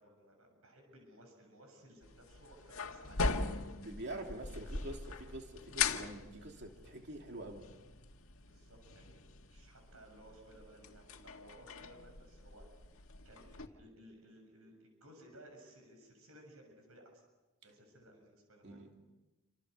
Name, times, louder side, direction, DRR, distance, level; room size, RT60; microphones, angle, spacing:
voice 1, 0.0-3.7 4.5-4.8 8.4-17.2 17.6-18.8, right 1 dB, 75° right, 3 dB, 7.2 m, -59 dB
sound 1, 2.0-13.7, left 4 dB, 75° left, 1.8 m, -41 dB
voice 2, 3.7-7.7 18.6-19.1, right 1 dB, 50° right, 2 dB, 2.9 m, -46 dB
28.5 x 27.0 x 6.8 m, 1.1 s
head